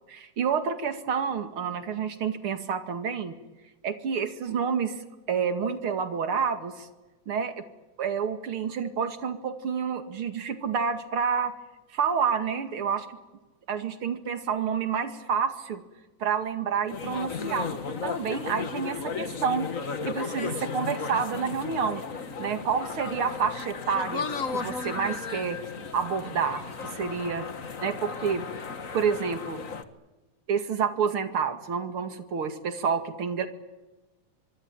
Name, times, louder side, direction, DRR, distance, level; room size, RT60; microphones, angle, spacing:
voice 1, 0.1-3.4 3.8-5.0 5.3-6.9 7.3-7.6 8.0-11.5 11.9-13.1 13.7-15.8 16.2-19.7 20.0-22.0 22.4-24.2 24.5-25.6 25.9-26.6 26.9-27.5 27.8-28.4 28.9-29.6 30.5-33.5, right 6 dB, 50° right, 8 dB, 2.8 m, -29 dB
sound 1, 16.9-29.8, left 5 dB, 40° left, 1.3 m, -35 dB
25.5 x 23.5 x 9.2 m, 1.1 s
omnidirectional pair, 3.3 m